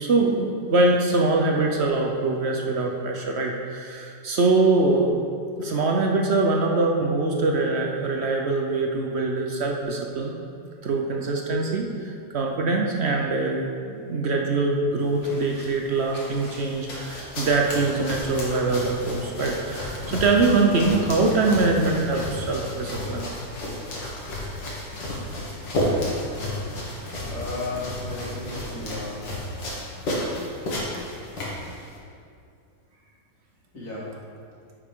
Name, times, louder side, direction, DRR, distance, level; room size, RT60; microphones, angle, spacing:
voice 1, 0.0-5.1 5.6-10.3 10.8-23.3, right 3 dB, 55° right, 1 dB, 0.7 m, -23 dB
sound 1, 15.0-32.0, left 1 dB, 80° left, 2.5 m, -32 dB
voice 2, 27.2-29.2 33.7-34.1, left 2 dB, 55° left, -8 dB, 3.1 m, -33 dB
9.4 x 8.4 x 3.7 m, 2.3 s
omnidirectional pair, 2.0 m